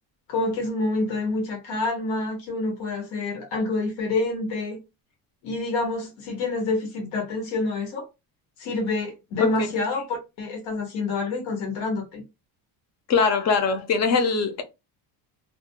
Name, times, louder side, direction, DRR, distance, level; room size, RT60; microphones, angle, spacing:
voice 1, 0.3-4.8 5.4-8.1 8.6-12.2, left 3 dB, 70° left, 1.2 m, -27 dB
voice 2, 13.1-14.6, left 5 dB, 35° left, 0.4 m, -22 dB
2.3 x 2.2 x 2.7 m
cardioid pair, 175°, 48 cm